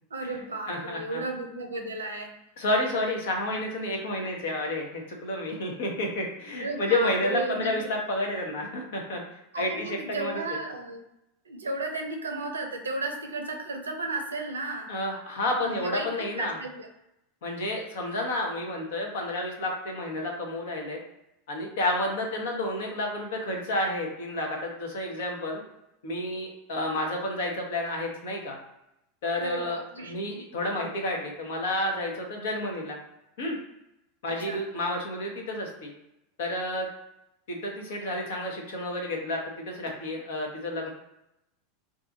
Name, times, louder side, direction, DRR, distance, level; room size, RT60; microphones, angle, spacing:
voice 1, 0.1-2.4 6.5-7.9 9.5-11.0 11.5-14.9 15.5-16.9 29.4-30.1 30.6-30.7 34.3-34.6, right 3 dB, 85° right, 4 dB, 0.5 m, -34 dB
voice 2, 0.7-1.2 2.6-9.2 9.5-10.4 14.9-16.6 17.4-21.0 21.5-25.6 26.0-28.6 29.2-33.0 33.4-33.6 34.2-35.9 36.4-36.9 37.5-40.9, left 1 dB, 65° left, 1 dB, 0.9 m, -30 dB
2.5 x 2.4 x 3.9 m, 0.85 s
figure-of-eight pair, 90°, 0 cm